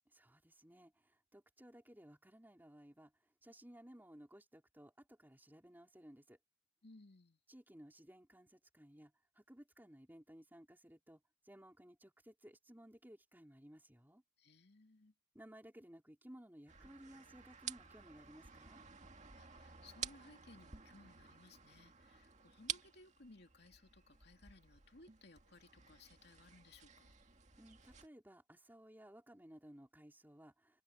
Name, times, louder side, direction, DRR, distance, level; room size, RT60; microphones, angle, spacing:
voice 1, 0.1-6.4 7.5-14.2 15.3-18.8 27.6-30.8, equal, 10° right, 3.5 m, -59 dB
voice 2, 6.8-7.4 14.4-15.1 19.4-27.1, left 2 dB, 60° left, 2.6 m, -62 dB
sound 1, 16.7-28.1, right 7 dB, 40° right, 2.0 m, -51 dB
head